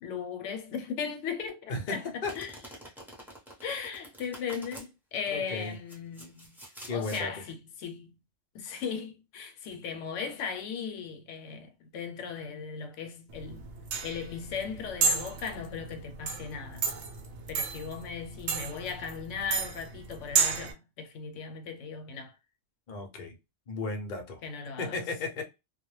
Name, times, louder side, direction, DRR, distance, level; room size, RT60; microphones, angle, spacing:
voice 1, 0.0-2.5 3.6-6.6 6.9-8.1 8.5-13.6 14.0-16.9 17.5-22.3 24.4-25.0, left 6 dB, 85° left, 0.9 m, -37 dB
voice 2, 1.7-2.4 5.3-5.8 6.9-7.4 22.9-23.4 23.7-24.4 24.8-25.4, left 3 dB, 50° left, 0.7 m, -35 dB
Domestic sounds home sounds, 2.2-4.9 5.6-7.3, equal, ahead, 0.6 m, -47 dB
sound 1, 13.3-20.7, right 5 dB, 75° right, 0.9 m, -31 dB
2.2 x 2.0 x 3.0 m
omnidirectional pair, 1.2 m